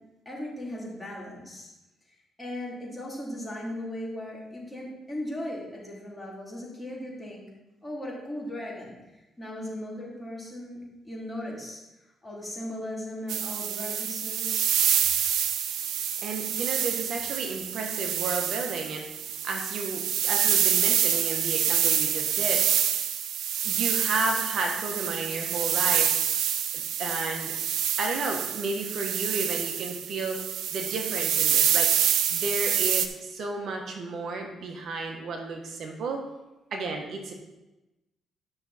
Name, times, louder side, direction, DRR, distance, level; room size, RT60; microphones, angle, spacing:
voice 1, 0.2-1.7 2.4-7.4 7.8-11.8 12.2-14.7, left 1 dB, 15° left, -5 dB, 3.3 m, -37 dB
sound 1, 13.3-33.1, right 9 dB, 80° right, 0.6 m, -27 dB
voice 2, 16.2-22.9 23.6-26.2 26.7-27.5 28.0-36.2 36.7-37.3, right 3 dB, 65° right, 2 dB, 1.4 m, -33 dB
10.5 x 6.2 x 4.3 m, 1.0 s
cardioid pair, 90°, 0 cm